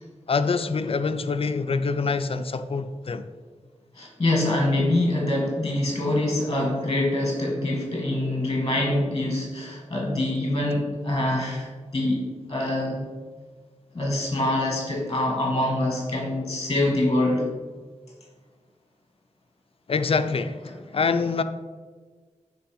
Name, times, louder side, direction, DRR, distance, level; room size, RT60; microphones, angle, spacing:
voice 1, 0.3-3.3 19.9-21.4, left 4 dB, 50° left, 0.4 m, -25 dB
voice 2, 3.9-12.2 12.5-13.0 13.9-17.5, left 1 dB, 30° left, 1.5 m, -25 dB
6.8 x 3.3 x 4.9 m
cardioid pair, 60°, 12 cm